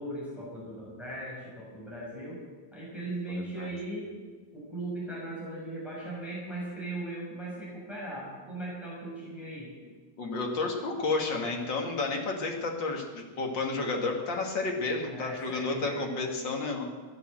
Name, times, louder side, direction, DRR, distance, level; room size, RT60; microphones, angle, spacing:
voice 1, 0.0-2.4 2.7-4.1 4.5-9.7 15.1-16.3, right 1 dB, ahead, -6 dB, 5.9 m, -38 dB
voice 2, 3.3-3.7 10.2-16.8, left 3 dB, 40° left, 1 dB, 2.6 m, -31 dB
15.5 x 10.5 x 7.7 m, 1.4 s
omnidirectional pair, 3.3 m